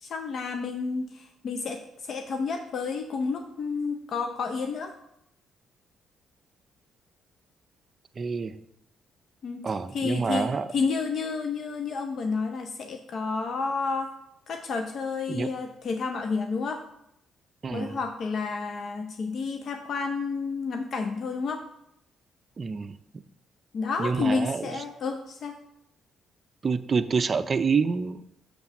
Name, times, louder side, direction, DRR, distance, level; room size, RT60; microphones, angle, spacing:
voice 1, 0.0-4.9 9.4-9.6 9.9-14.1 14.5-16.8 17.7-21.6 23.7-25.6, left 4 dB, 60° left, 5 dB, 0.6 m, -30 dB
voice 2, 8.2-8.6 9.6-10.7 15.3-15.5 17.6-18.0 22.6-23.0 24.0-24.8 26.6-28.2, right 5 dB, 40° right, 11 dB, 0.5 m, -27 dB
6.5 x 4.1 x 5.9 m, 0.79 s
cardioid pair, 90°, 0 cm